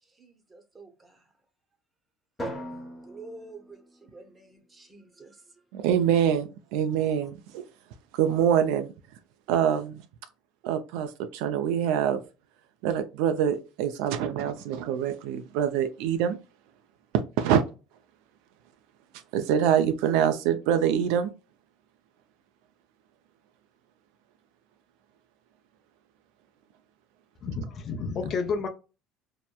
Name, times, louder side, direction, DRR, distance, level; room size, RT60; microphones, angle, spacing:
voice 1, 0.1-1.2 3.0-5.6 6.8-7.2, right 3 dB, 20° right, 0.7 m, -49 dB
Drum, 2.4-4.7, equal, 15° left, 1.0 m, -40 dB
voice 2, 5.7-7.6 8.2-8.9 9.5-10.0 10.6-12.2 12.8-16.4 17.4-17.6 19.3-21.3, right 9 dB, 80° right, 0.4 m, -25 dB
voice 3, 27.4-28.7, left 4 dB, 45° left, 0.5 m, -30 dB
2.9 x 2.1 x 2.2 m
supercardioid pair, 110°, 0 cm